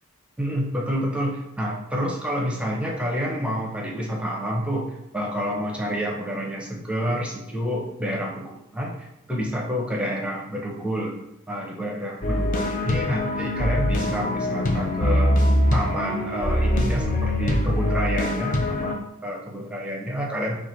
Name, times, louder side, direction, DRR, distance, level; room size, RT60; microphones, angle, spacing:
voice 1, 0.4-4.9 5.1-11.1 11.5-15.4 15.7-20.6, equal, 5° right, -1 dB, 0.7 m, -28 dB
sound 1, 12.2-18.9, left 1 dB, 40° left, 0.6 m, -23 dB
4.2 x 2.4 x 4.4 m, 0.85 s
head